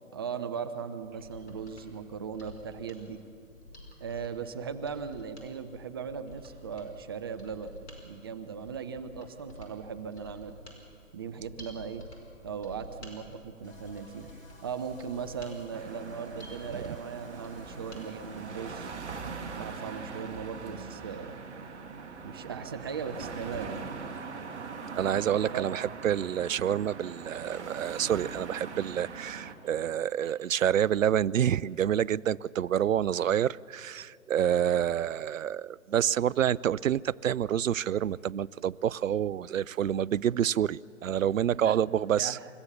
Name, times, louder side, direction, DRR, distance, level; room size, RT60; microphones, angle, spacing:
voice 1, 0.1-3.2 4.0-7.8 8.0-10.6 11.1-12.1 12.4-14.3 14.6-18.9 19.5-21.4 22.2-23.9 25.5-25.7 41.5-41.8 42.2-42.5, right 6 dB, 20° right, 9 dB, 0.5 m, -38 dB
Mechanisms, 1.1-18.0 18.4-18.5, left 1 dB, 55° left, 5.2 m, -50 dB
sound 1, 13.6-19.2, equal, 75° left, 2.7 m, -54 dB
sound 2, 15.7-29.5, right 5 dB, 55° right, 1.9 m, -41 dB
voice 2, 24.9-42.4, right 10 dB, 70° right, 22 dB, 0.5 m, -28 dB
28.5 x 14.5 x 6.9 m, 2.5 s
figure-of-eight pair, 125°, 41 cm